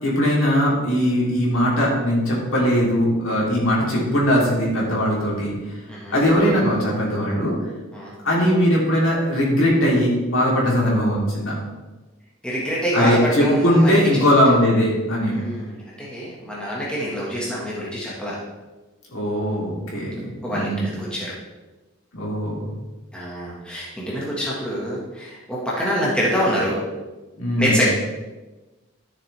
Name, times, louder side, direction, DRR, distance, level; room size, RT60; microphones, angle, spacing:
voice 1, 0.0-5.8 6.1-7.5 8.2-11.6 12.9-15.4 19.1-20.9 22.1-22.7 27.4-27.8, equal, 65° left, -4 dB, 3.3 m, -20 dB
voice 2, 12.4-14.3 15.3-18.4 20.4-21.3 23.1-26.8 27.6-27.8, equal, 5° left, -6 dB, 1.7 m, -26 dB
12.5 x 6.9 x 3.5 m, 1.2 s
head